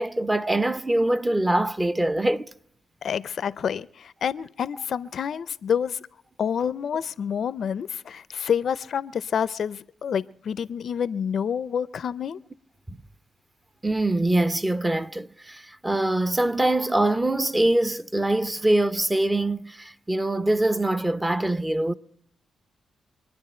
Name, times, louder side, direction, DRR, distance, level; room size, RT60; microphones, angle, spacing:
voice 1, 0.0-2.5 12.9-13.0 13.8-21.9, right 1 dB, 15° right, 0.7 m, -23 dB
voice 2, 3.0-6.0 6.4-12.4, left 7 dB, 65° left, 0.5 m, -28 dB
26.0 x 9.8 x 4.3 m
cardioid pair, 70°, 0 cm